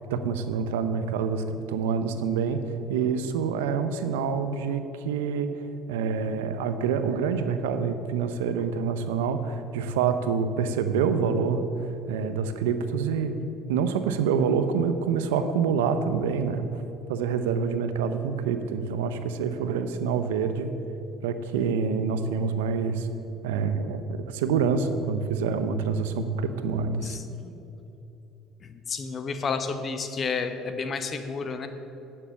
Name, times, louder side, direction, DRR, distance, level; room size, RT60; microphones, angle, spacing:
voice 1, 0.1-2.6 2.9-5.5 5.9-16.8 17.1-20.7 21.2-23.1 23.4-27.2, right 6 dB, 90° right, 9 dB, 0.7 m, -27 dB
voice 2, 27.0-27.6 28.6-31.7, left 5 dB, 40° left, 8 dB, 1.0 m, -31 dB
10.0 x 6.8 x 7.0 m, 2.9 s
supercardioid pair, 80°, 0 cm